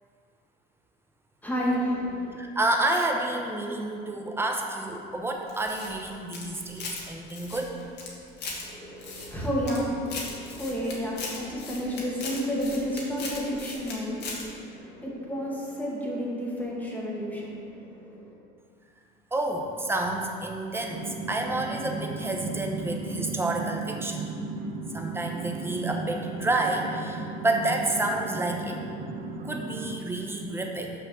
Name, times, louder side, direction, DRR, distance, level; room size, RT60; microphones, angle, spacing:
voice 1, 1.4-2.3 8.6-18.4, equal, 10° left, -5 dB, 2.0 m, -31 dB
voice 2, 2.4-7.7 19.3-24.3 24.9-28.8 29.4-30.9, right 2 dB, 10° right, 1 dB, 1.0 m, -29 dB
sound 1, 5.5-7.0 7.3-8.6 9.0-9.8 10.1-13.9 14.2-14.4, left 4 dB, 55° left, 1.9 m, -38 dB
sound 2, 20.9-30.0, right 4 dB, 45° right, 0.9 m, -35 dB
6.3 x 5.3 x 6.3 m, 2.4 s
cardioid pair, 105°, 21 cm